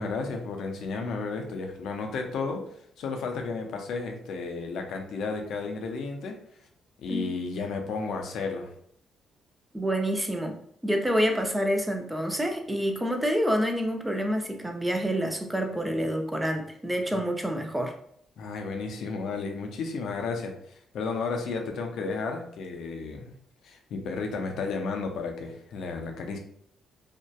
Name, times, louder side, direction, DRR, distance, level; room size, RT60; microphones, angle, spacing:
voice 1, 0.0-6.4 7.0-8.7 17.1-17.3 18.4-20.5 20.9-23.3 23.6-26.4, left 4 dB, 75° left, 3 dB, 0.4 m, -33 dB
voice 2, 9.7-10.6 10.8-17.9, equal, 10° right, 4 dB, 0.4 m, -27 dB
2.6 x 2.1 x 2.2 m, 0.67 s
cardioid pair, 90°, 0 cm